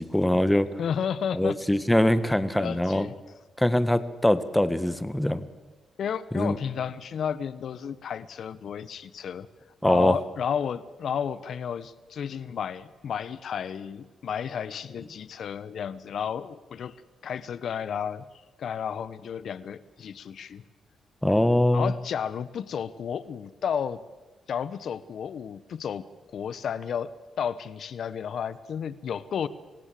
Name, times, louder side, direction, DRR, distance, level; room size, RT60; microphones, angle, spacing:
voice 1, 0.0-0.7 1.3-3.1 3.6-5.4 6.3-6.6 9.8-10.2 21.2-21.9, left 1 dB, 10° left, 13 dB, 1.7 m, -23 dB
voice 2, 0.8-1.6 2.6-3.1 6.0-9.5 9.8-16.9 17.2-18.2 18.6-20.6 21.7-24.0 24.5-26.1 26.3-27.1 27.4-29.5, left 8 dB, 70° left, 16 dB, 1.1 m, -32 dB
26.5 x 16.5 x 7.7 m, 1.3 s
supercardioid pair, 50°, 0 cm